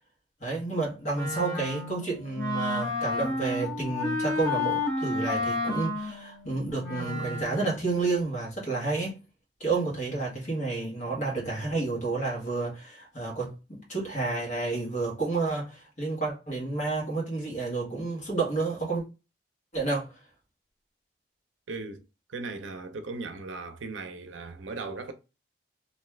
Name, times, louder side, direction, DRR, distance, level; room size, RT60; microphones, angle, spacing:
voice 1, 0.4-9.2 9.6-19.0 19.7-20.1, right 3 dB, 40° left, 1.2 m, -30 dB
Wind instrument woodwind instrument, 1.1-7.7, left 2 dB, 20° left, 1.0 m, -31 dB
voice 2, 21.7-22.0 22.3-25.1, right 3 dB, 90° right, 0.5 m, -37 dB
2.6 x 2.3 x 3.2 m
head